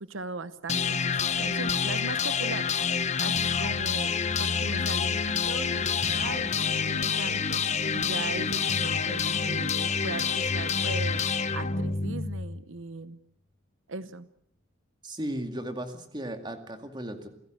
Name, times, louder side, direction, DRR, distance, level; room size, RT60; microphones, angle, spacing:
voice 1, 0.0-2.7 3.2-5.2 5.5-7.6 7.9-13.2 13.9-14.3, right 3 dB, 80° right, 14 dB, 0.9 m, -39 dB
sound 1, 0.7-12.6, left 6 dB, 35° left, 1.0 m, -28 dB
voice 2, 15.0-17.3, right 1 dB, 20° right, 7 dB, 2.2 m, -35 dB
28.0 x 15.5 x 7.8 m, 0.69 s
head